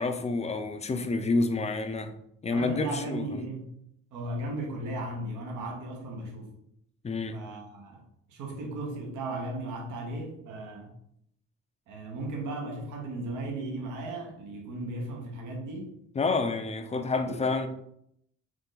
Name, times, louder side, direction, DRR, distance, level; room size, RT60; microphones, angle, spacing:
voice 1, 0.0-2.1 2.4-3.3 7.0-7.4 16.2-17.7, left 3 dB, 20° left, 0.4 m, -28 dB
voice 2, 2.5-3.7 4.1-6.5 7.3-11.0 11.9-15.9 17.2-17.5, right 2 dB, 80° right, 1.0 m, -36 dB
4.6 x 2.5 x 3.9 m
cardioid pair, 90°, 30 cm